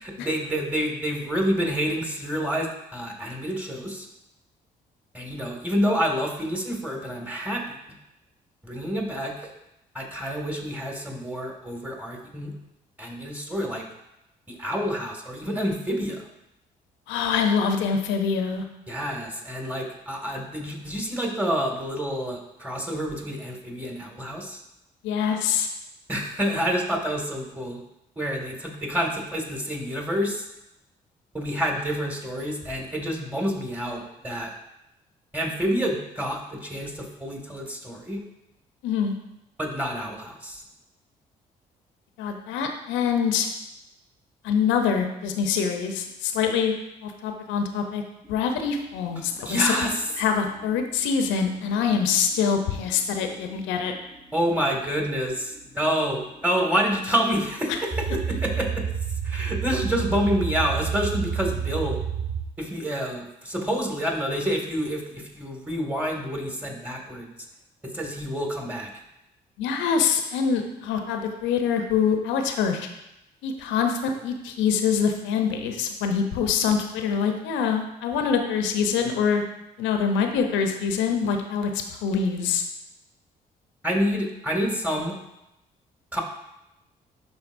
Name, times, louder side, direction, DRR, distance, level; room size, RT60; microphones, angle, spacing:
voice 1, 0.0-4.1 5.1-7.8 8.6-9.5 9.9-12.5 13.0-13.9 14.5-16.2 18.9-24.6 26.1-27.8 28.2-30.5 31.3-34.5 35.3-38.2 39.6-40.6 49.4-49.9 54.3-58.9 59.2-62.0 62.6-67.3 67.9-68.9 83.8-85.2 86.1-86.2, equal, 10° right, 0 dB, 2.2 m, -28 dB
voice 2, 17.1-18.6 25.0-25.7 38.8-39.1 42.2-43.5 44.4-46.7 47.0-48.0 48.3-49.7 50.2-53.9 57.7-57.8 69.6-72.9 73.4-79.4 79.8-82.6, left 6 dB, 75° left, 4 dB, 0.8 m, -25 dB
sound 1, 48.2-62.4, right 7 dB, 25° right, 1.4 m, -31 dB
11.5 x 3.9 x 2.6 m, 0.89 s
hypercardioid pair, 45°, 20 cm